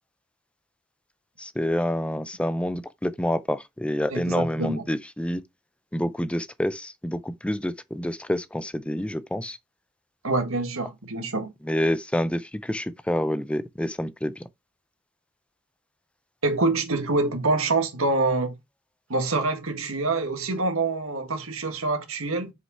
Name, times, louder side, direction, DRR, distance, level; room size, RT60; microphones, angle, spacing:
voice 1, 1.4-5.4 5.9-9.6 11.6-14.4, left 1 dB, 5° left, 0.4 m, -28 dB
voice 2, 4.1-4.8 10.2-11.5 16.4-18.5 19.1-22.5, right 3 dB, 70° right, 1.8 m, -26 dB
6.3 x 5.2 x 4.6 m
head